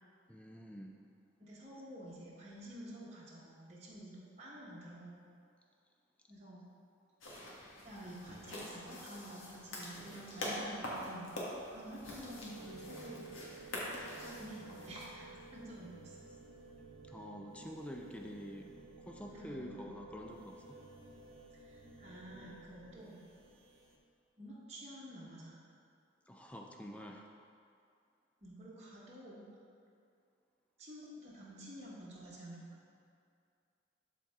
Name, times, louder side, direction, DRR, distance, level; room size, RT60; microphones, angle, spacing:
voice 1, 0.3-1.0 17.1-18.7 19.0-20.8 26.3-27.3, equal, 5° left, 1 dB, 0.5 m, -47 dB
voice 2, 1.4-5.2 6.3-6.6 7.8-11.3 11.7-13.3 14.0-16.2 19.3-19.9 21.5-23.2 24.4-25.5 28.4-29.5 30.8-32.6, equal, 35° right, -8 dB, 1.3 m, -50 dB
sound 1, 7.2-15.1, left 1 dB, 90° left, 1.6 m, -45 dB
sound 2, 12.0-24.0, right 3 dB, 90° right, 1.0 m, -54 dB
12.0 x 4.2 x 3.6 m, 2.4 s
head